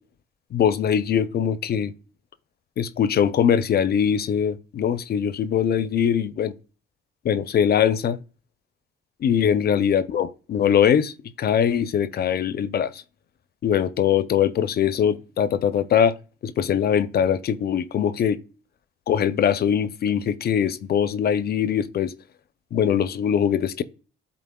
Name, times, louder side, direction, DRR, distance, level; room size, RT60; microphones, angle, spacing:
voice 1, 0.5-1.9 2.8-6.5 7.2-8.2 9.2-11.1 11.4-13.0 13.6-16.1 16.4-18.4 19.1-22.1 22.7-23.8, left 8 dB, 50° left, 0.5 m, -22 dB
11.0 x 3.9 x 2.2 m
cardioid pair, 90°, 20 cm